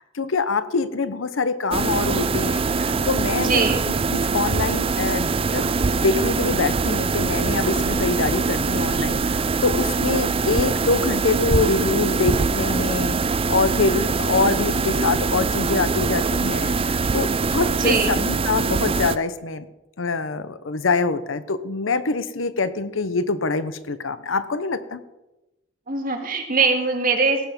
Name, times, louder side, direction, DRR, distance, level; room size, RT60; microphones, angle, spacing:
voice 1, 0.0-3.6 4.1-19.7 20.0-25.0, left 4 dB, 85° left, 13 dB, 0.8 m, -25 dB
sound 1, 1.7-19.2, right 4 dB, 30° right, 0.4 m, -23 dB
voice 2, 3.4-3.8 17.8-18.2 25.9-27.5, right 4 dB, 45° right, 3 dB, 2.0 m, -22 dB
17.5 x 7.1 x 5.3 m, 1.0 s
head